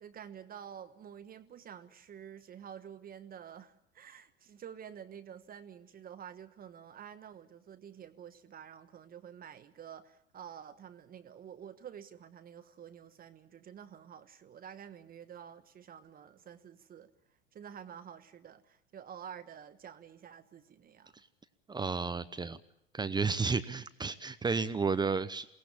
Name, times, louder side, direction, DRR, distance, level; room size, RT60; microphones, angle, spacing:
voice 1, 0.0-17.1 17.5-21.1, right 8 dB, 30° right, 1.3 m, -49 dB
voice 2, 21.7-22.6 22.9-25.5, right 4 dB, 15° right, 0.8 m, -32 dB
22.5 x 17.5 x 8.6 m
hypercardioid pair, 85°, 30 cm